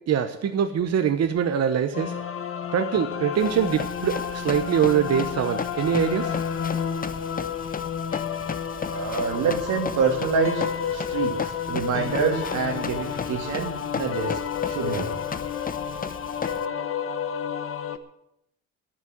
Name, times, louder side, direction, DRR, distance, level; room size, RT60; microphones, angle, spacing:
voice 1, 0.1-2.2 2.7-6.4, right 8 dB, 55° right, 8 dB, 1.0 m, -23 dB
sound 1, 1.9-18.0, left 7 dB, 45° left, 1.2 m, -31 dB
Run, 3.4-16.6, left 5 dB, 30° left, 0.8 m, -36 dB
voice 2, 8.9-15.1, right 5 dB, 85° right, 3 dB, 2.6 m, -27 dB
10.5 x 9.8 x 9.3 m, 0.81 s
cardioid pair, 90°, 30 cm